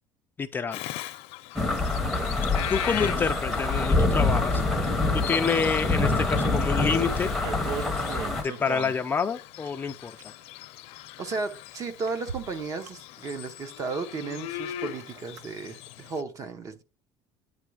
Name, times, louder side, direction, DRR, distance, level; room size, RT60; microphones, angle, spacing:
voice 1, 0.4-0.8 2.7-4.6 5.1-7.3 8.3-10.1, left 5 dB, 20° left, 0.4 m, -28 dB
Bird vocalization bird call bird song, 0.7-16.2, left 15 dB, 70° left, 0.6 m, -40 dB
sound 1, 1.6-8.4, left 2 dB, ahead, 0.8 m, -25 dB
sound 2, 7.2-9.0 9.7-10.5 11.4-11.5 12.2-12.9 13.3-13.5 13.9-14.0 14.4-14.7 15.0-15.4 15.9-16.0, right 7 dB, 85° right, 0.7 m, -37 dB
voice 2, 11.2-16.8, right 4 dB, 30° right, 0.8 m, -34 dB
9.0 x 3.1 x 4.8 m
cardioid pair, 160°, 11 cm